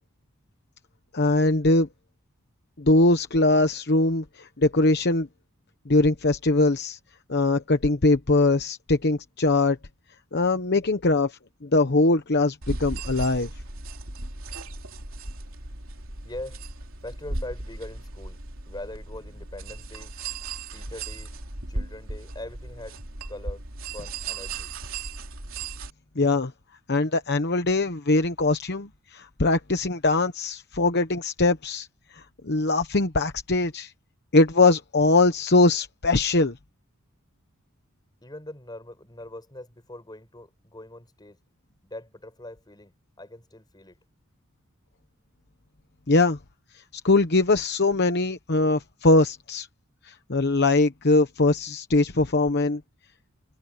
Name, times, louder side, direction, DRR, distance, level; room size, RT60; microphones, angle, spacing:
voice 1, 1.1-1.9 2.8-5.3 5.9-7.0 7.3-9.8 10.3-13.5 26.2-26.5 26.9-31.9 32.1-33.9 34.3-36.6 46.1-46.4 46.9-49.7 50.0-52.8, left 2 dB, 50° left, 1.0 m, -22 dB
sound 1, 12.6-25.9, right 2 dB, 65° right, 3.6 m, -36 dB
voice 2, 16.2-16.6 17.0-18.4 18.7-20.2 20.7-21.3 21.7-23.0 23.3-23.6 23.9-24.7 38.2-41.4 41.8-44.0, left 1 dB, 20° left, 5.3 m, -42 dB
head